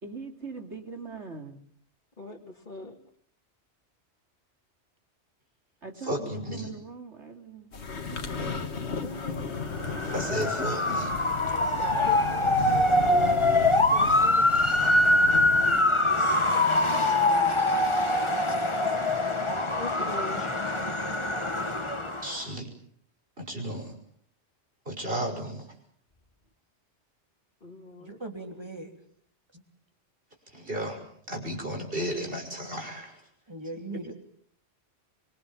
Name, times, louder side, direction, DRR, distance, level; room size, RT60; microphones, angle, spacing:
voice 1, 0.0-1.6 5.8-7.7 8.1-8.9, right 4 dB, 85° right, 5 dB, 3.0 m, -42 dB
voice 2, 2.2-3.0 9.0-9.5 11.8-12.2 13.1-14.5 19.7-20.4 27.6-28.2, left 2 dB, 45° left, -2 dB, 2.3 m, -40 dB
voice 3, 6.0-6.7 10.1-11.1 16.0-16.3 20.4-20.5 22.2-22.7 23.4-23.9 24.9-25.7 30.5-31.0 31.3-33.2, equal, 55° right, 3 dB, 6.1 m, -33 dB
sound 1, 7.7-15.8, left 5 dB, 75° left, 1.9 m, -35 dB
Motor vehicle (road) / Siren, 9.7-22.4, left 2 dB, 25° left, 1.8 m, -24 dB
voice 4, 13.1-13.4 28.0-28.9 29.5-29.6 33.5-34.1, right 2 dB, 25° right, 4 dB, 3.3 m, -40 dB
25.0 x 24.0 x 7.4 m, 0.62 s
omnidirectional pair, 1.1 m